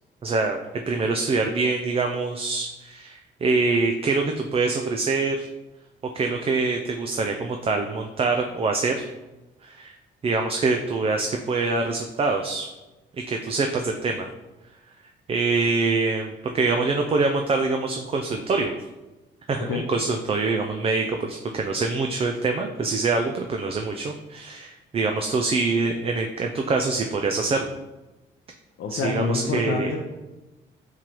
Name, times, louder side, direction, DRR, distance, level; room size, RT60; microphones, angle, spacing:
voice 1, 0.2-0.6 0.9-5.5 6.1-9.1 9.6-10.0 10.2-12.7 13.3-14.3 15.3-18.7 19.5-27.7 28.9-29.9, right 3 dB, 30° right, 3 dB, 0.3 m, -25 dB
voice 2, 28.8-30.0, left 4 dB, 75° left, 0 dB, 0.6 m, -27 dB
4.4 x 3.8 x 3.0 m, 1.1 s
cardioid pair, 90°, 20 cm